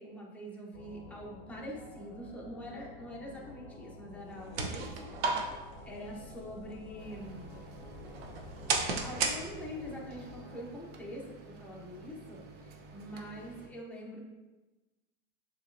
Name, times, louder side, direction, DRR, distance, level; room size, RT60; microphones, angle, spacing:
voice 1, 0.0-7.5 9.0-14.2, equal, 5° left, -3 dB, 0.9 m, -45 dB
sound 1, 0.7-10.7, left 3 dB, 45° left, 0.8 m, -51 dB
sound 2, 4.2-9.9, right 4 dB, 90° right, 0.8 m, -36 dB
sound 3, 7.0-13.7, right 3 dB, 35° right, 0.5 m, -52 dB
6.5 x 3.2 x 2.5 m, 1.2 s
supercardioid pair, 135°, 30 cm